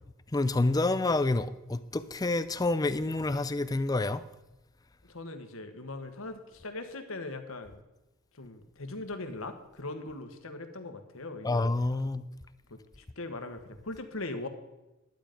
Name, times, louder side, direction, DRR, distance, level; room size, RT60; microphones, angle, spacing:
voice 1, 0.3-4.2 11.4-12.2, left 2 dB, 20° left, 0.4 m, -28 dB
voice 2, 5.1-7.8 8.3-11.7 12.7-14.5, left 2 dB, 75° left, 1.3 m, -40 dB
11.5 x 9.2 x 5.2 m
head